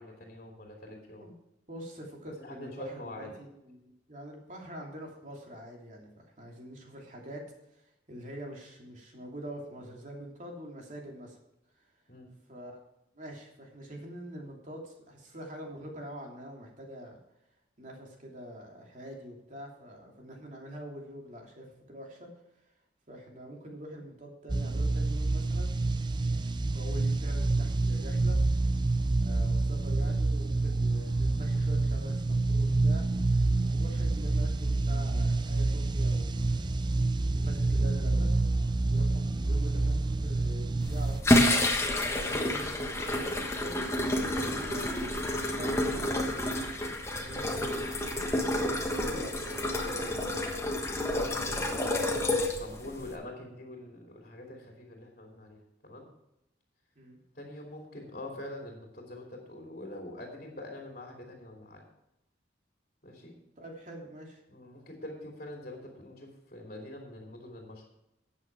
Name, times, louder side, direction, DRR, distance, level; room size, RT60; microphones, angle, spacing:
voice 1, 0.0-1.3 2.4-3.4 12.1-12.3 49.0-51.7 52.4-56.1 57.3-61.8 63.0-63.3 64.5-67.8, left 1 dB, 45° left, 0 dB, 2.7 m, -44 dB
voice 2, 1.7-7.4 7.7-11.4 11.7-11.9 12.5-12.8 13.1-17.2 17.8-22.3 23.1-25.7 26.7-28.7 29.2-33.0 33.6-36.7 37.3-38.3 38.9-41.4 42.1-46.8 47.2-47.9 48.9-49.4 56.9-57.2 63.6-64.4, equal, 40° right, 0 dB, 2.8 m, -45 dB
sound 1, 24.5-41.2, right 2 dB, 25° right, 0.5 m, -27 dB
sound 2, 40.8-53.2, left 1 dB, 15° left, 1.3 m, -29 dB
13.0 x 8.8 x 4.6 m, 0.86 s
head